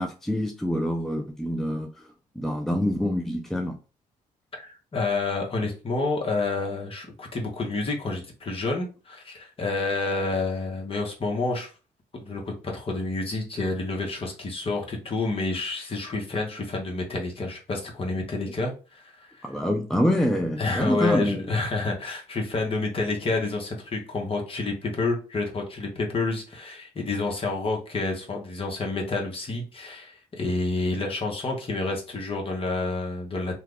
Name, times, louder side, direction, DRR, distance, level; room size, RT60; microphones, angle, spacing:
voice 1, 0.0-1.9 2.4-3.8 19.4-21.4, equal, ahead, 3 dB, 0.5 m, -26 dB
voice 2, 4.6-11.7 12.1-19.5 20.6-33.6, left 3 dB, 40° left, 0 dB, 1.2 m, -29 dB
2.8 x 2.4 x 3.7 m, 0.34 s
cardioid pair, 80°, 15 cm